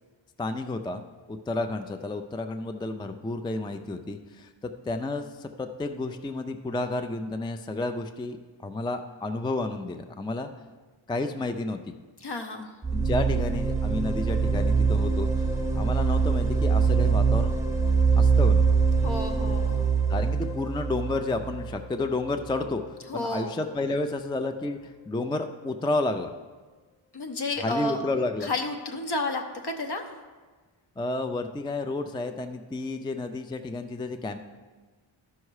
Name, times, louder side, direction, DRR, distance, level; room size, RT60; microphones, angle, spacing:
voice 1, 0.4-1.0 1.3-8.4 8.6-10.5 11.1-11.8 12.9-15.5 15.7-17.6 18.2-18.7 20.1-26.3 27.6-28.5 31.0-34.4, left 2 dB, 10° left, 7 dB, 0.4 m, -31 dB
voice 2, 12.2-12.7 19.0-20.0 23.1-23.6 27.1-28.0 28.4-30.0, left 2 dB, 55° left, 4 dB, 1.1 m, -31 dB
sound 1, 12.8-22.6, right 5 dB, 5° right, 0.9 m, -24 dB
12.5 x 5.6 x 4.8 m, 1.4 s
wide cardioid pair, 90°, 47 cm